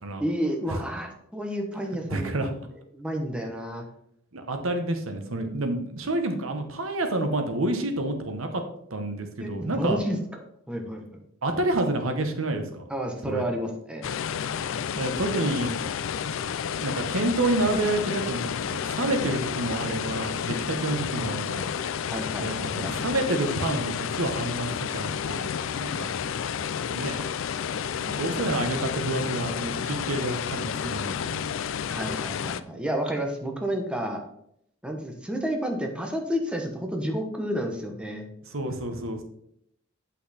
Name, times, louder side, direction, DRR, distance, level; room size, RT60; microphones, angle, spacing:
voice 1, 0.2-2.5 2.9-3.8 9.4-10.4 10.7-11.2 12.9-14.1 22.1-22.9 31.9-34.2 34.8-38.3, equal, 5° right, 2 dB, 1.0 m, -30 dB
voice 2, 2.1-2.5 4.3-8.5 8.9-10.0 11.4-12.8 13.2-13.4 14.9-15.8 16.8-21.7 22.4-26.3 26.9-27.2 28.0-31.5 32.7-32.8 38.5-39.2, right 2 dB, 75° right, 6 dB, 1.2 m, -29 dB
sound 1, 14.0-32.6, left 7 dB, 65° left, 0.4 m, -31 dB
8.4 x 5.7 x 4.2 m, 0.73 s
head